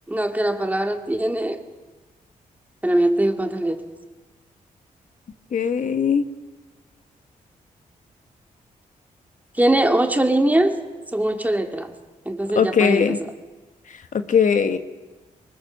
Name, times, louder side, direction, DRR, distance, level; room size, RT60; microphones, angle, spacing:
voice 1, 0.1-1.6 2.8-3.8 9.6-10.8 11.1-11.9 12.3-13.2, right 1 dB, 10° right, 5 dB, 2.2 m, -21 dB
voice 2, 5.5-6.3 12.5-13.2 14.1-14.8, left 6 dB, 60° left, 9 dB, 1.2 m, -19 dB
23.5 x 20.0 x 7.3 m, 1.2 s
cardioid pair, 70°, 15 cm